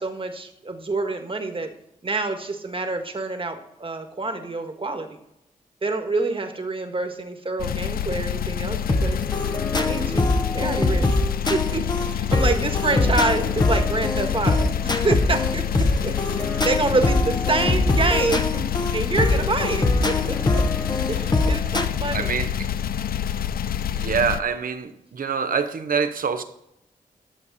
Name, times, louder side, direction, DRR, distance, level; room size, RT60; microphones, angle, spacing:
voice 1, 0.0-1.7 2.0-5.2 5.8-9.2 9.7-10.3 10.5-11.2 11.5-18.6 18.9-20.6 21.1-22.4, right 3 dB, 35° right, 5 dB, 1.6 m, -27 dB
sound 1, 7.6-24.4, left 9 dB, 90° left, 0.4 m, -27 dB
sound 2, 8.9-21.8, left 2 dB, 30° left, 1.0 m, -23 dB
voice 2, 22.1-22.7 23.9-26.4, right 6 dB, 70° right, 9 dB, 0.9 m, -25 dB
11.0 x 7.0 x 4.2 m, 0.81 s
cardioid pair, 65°, 15 cm